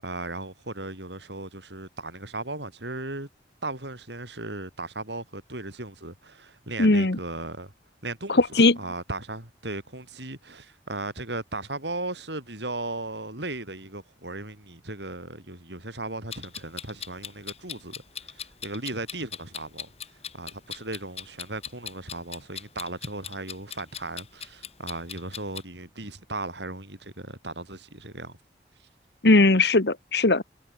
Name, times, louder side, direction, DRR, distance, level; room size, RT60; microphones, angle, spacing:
voice 1, 0.0-3.3 3.6-7.7 8.0-17.9 18.2-19.9 20.3-28.4, right 2 dB, 80° right, 7.9 m, -36 dB
voice 2, 6.8-7.2 8.3-8.8 29.2-30.4, left 2 dB, 70° left, 1.4 m, -19 dB
Clock, 16.3-25.6, left 8 dB, 35° left, 3.8 m, -40 dB
head